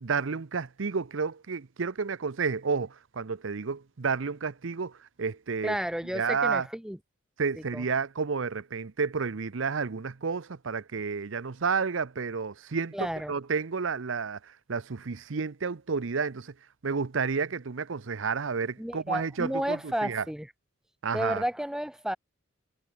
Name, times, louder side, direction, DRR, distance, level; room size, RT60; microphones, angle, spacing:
voice 1, 0.0-5.8 6.1-6.7 7.4-16.5 16.8-20.2 21.0-21.4, right 5 dB, 70° right, 0.7 m, -31 dB
voice 2, 5.6-7.0 7.7-7.8 12.9-13.3 18.8-20.5 21.1-22.2, equal, 5° right, 0.7 m, -32 dB
head